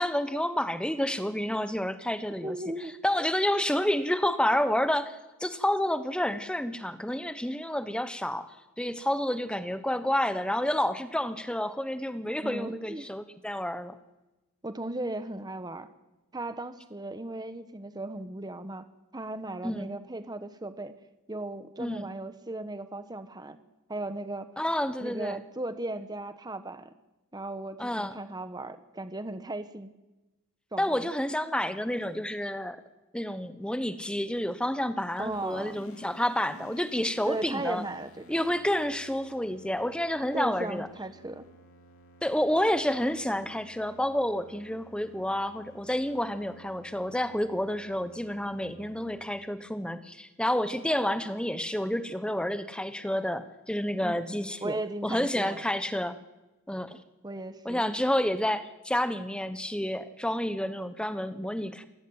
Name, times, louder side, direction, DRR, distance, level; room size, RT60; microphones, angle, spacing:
voice 1, 0.0-2.5 3.0-13.9 19.6-19.9 21.8-22.1 24.6-25.4 27.8-28.1 30.8-32.8 33.1-37.8 38.3-40.9 42.2-54.8 55.0-56.2 56.7-57.0 57.6-61.8, left 1 dB, 5° left, 10 dB, 1.2 m, -29 dB
voice 2, 2.4-3.3 12.4-13.1 14.6-15.9 16.3-18.9 19.1-20.9 21.3-23.6 23.9-24.5 25.0-26.9 27.3-29.9 30.7-31.1 35.2-35.9 37.2-38.4 40.3-41.5 54.0-55.6 57.2-57.9, right 2 dB, 20° right, 11 dB, 1.2 m, -36 dB
sound 1, 35.2-49.3, left 1 dB, 70° left, 2.7 m, -55 dB
28.0 x 14.5 x 8.0 m, 1.0 s
head